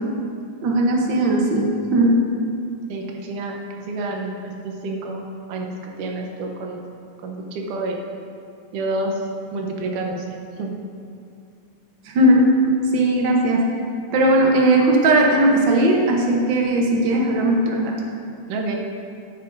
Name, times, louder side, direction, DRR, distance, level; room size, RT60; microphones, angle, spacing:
voice 1, 0.6-2.2 12.1-12.5 12.9-13.6 14.1-17.9, right 1 dB, 70° right, 0 dB, 1.1 m, -17 dB
voice 2, 2.9-4.3 4.6-6.8 7.2-8.0 8.7-9.2 9.5-10.7 18.5-18.8, right 2 dB, 90° right, 1 dB, 2.5 m, -29 dB
11.5 x 9.4 x 2.6 m, 2.4 s
omnidirectional pair, 3.5 m